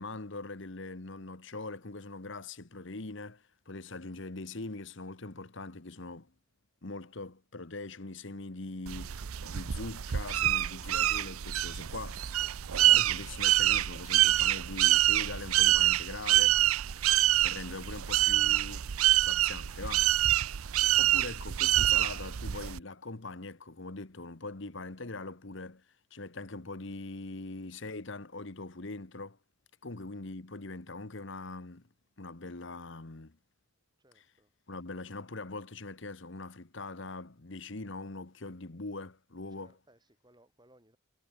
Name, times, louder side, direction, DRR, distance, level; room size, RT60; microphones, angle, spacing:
voice 1, 0.0-6.3 6.8-12.4 12.9-16.6 17.4-18.8 19.2-20.1 21.0-25.8 26.1-29.4 29.8-31.9 32.2-33.4 34.1-34.2 34.7-39.8, left 3 dB, 60° left, 1.3 m, -42 dB
sound 1, 8.9-22.8, right 14 dB, 85° right, 0.6 m, -26 dB
voice 2, 34.0-34.5 39.5-41.0, right 1 dB, 20° right, 7.4 m, -64 dB
head